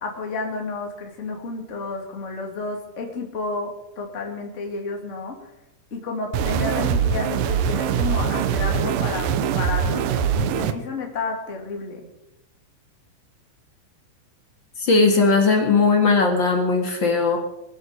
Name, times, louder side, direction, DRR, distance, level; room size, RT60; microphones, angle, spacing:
voice 1, 0.0-5.4 5.9-12.1, left 3 dB, 25° left, 1 dB, 2.2 m, -31 dB
sound 1, 6.3-10.7, right 8 dB, 75° right, 2.4 m, -23 dB
voice 2, 14.8-17.4, left 4 dB, 40° left, 2 dB, 2.1 m, -18 dB
22.0 x 8.2 x 6.8 m, 0.88 s
omnidirectional pair, 4.4 m